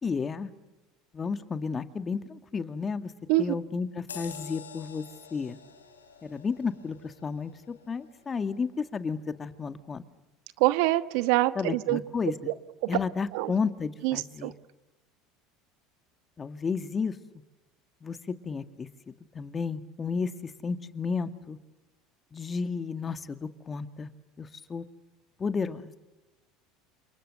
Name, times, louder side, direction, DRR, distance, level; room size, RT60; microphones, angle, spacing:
voice 1, 0.0-0.5 1.1-3.1 3.4-5.0 5.3-5.6 6.2-10.0 11.6-12.5 12.9-14.5 16.4-17.1 18.0-21.6 22.3-24.1 24.4-24.8 25.4-25.8, left 5 dB, 30° left, 10 dB, 2.0 m, -32 dB
sound 1, 4.1-9.0 9.5-9.7, left 7 dB, 90° left, 3.2 m, -48 dB
voice 2, 10.6-12.0 12.5-12.6 13.3-13.5 14.0-14.5, right 18 dB, 65° right, 13 dB, 1.3 m, -25 dB
29.5 x 28.0 x 6.8 m, 1.1 s
hypercardioid pair, 75°, 0 cm